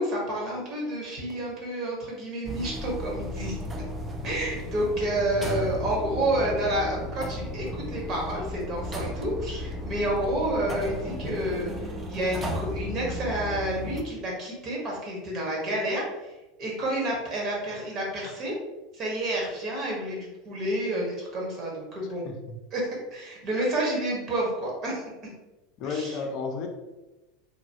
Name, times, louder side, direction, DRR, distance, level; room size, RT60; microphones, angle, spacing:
voice 1, 0.0-3.6 4.2-16.3 16.6-18.5 18.9-22.3 22.7-25.0 25.8-26.2, right 1 dB, 45° right, -2 dB, 1.2 m, -29 dB
sound 1, 2.4-14.0, equal, 20° right, 0.4 m, -34 dB
voice 2, 22.2-22.6 25.8-26.7, left 4 dB, 55° left, 3 dB, 0.5 m, -32 dB
3.0 x 2.3 x 2.8 m, 1.0 s
hypercardioid pair, 100°, 0 cm